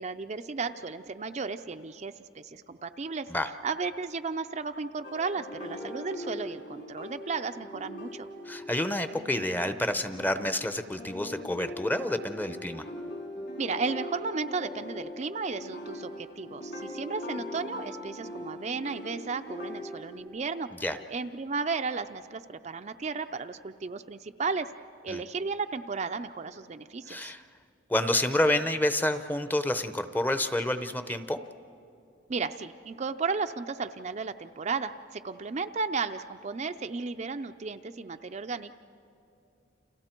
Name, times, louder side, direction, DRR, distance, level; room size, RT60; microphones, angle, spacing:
voice 1, 0.0-3.3 3.6-8.3 13.6-20.7 21.1-24.7 25.0-27.3 32.3-38.7, right 4 dB, 35° right, 8 dB, 0.5 m, -34 dB
sound 1, 5.0-20.2, left 1 dB, 60° left, 4.2 m, -41 dB
voice 2, 8.4-12.8 20.8-21.0 25.1-25.2 27.1-27.4 27.9-31.4, left 1 dB, 10° left, 10 dB, 0.7 m, -28 dB
30.0 x 28.5 x 4.5 m, 2.6 s
head